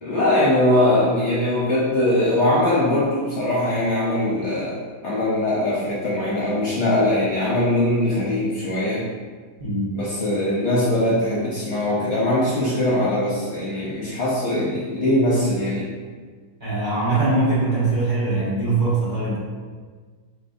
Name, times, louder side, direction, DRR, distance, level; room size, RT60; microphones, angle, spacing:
voice 1, 0.0-4.8 5.0-9.0 9.9-15.9, left 1 dB, 50° left, -7 dB, 1.1 m, -21 dB
voice 2, 9.6-9.9 16.6-19.4, right 2 dB, 30° right, -11 dB, 1.3 m, -22 dB
5.1 x 3.3 x 2.6 m, 1.5 s
omnidirectional pair, 1.7 m